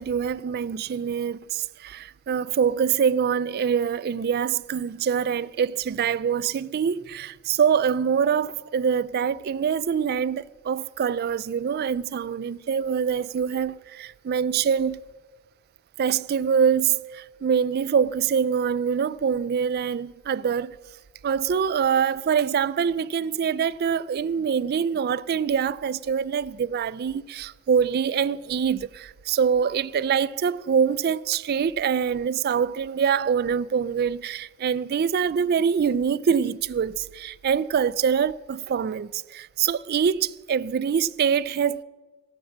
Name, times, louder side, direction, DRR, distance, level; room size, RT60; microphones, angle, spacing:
voice 1, 0.0-15.0 16.0-20.8 21.2-41.8, right 7 dB, 45° right, 0.3 m, -24 dB
18.0 x 6.1 x 7.2 m
head